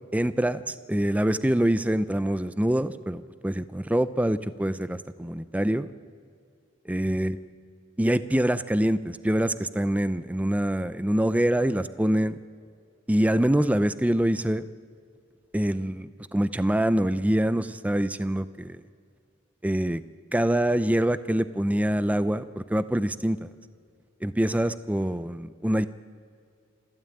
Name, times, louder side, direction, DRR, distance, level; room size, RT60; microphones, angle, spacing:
voice 1, 0.1-5.9 6.9-7.4 8.0-12.4 13.1-14.6 15.5-18.8 19.6-20.0 20.3-23.5 24.2-25.9, right 1 dB, 5° right, 13 dB, 0.5 m, -25 dB
27.0 x 12.5 x 8.9 m, 2.3 s
head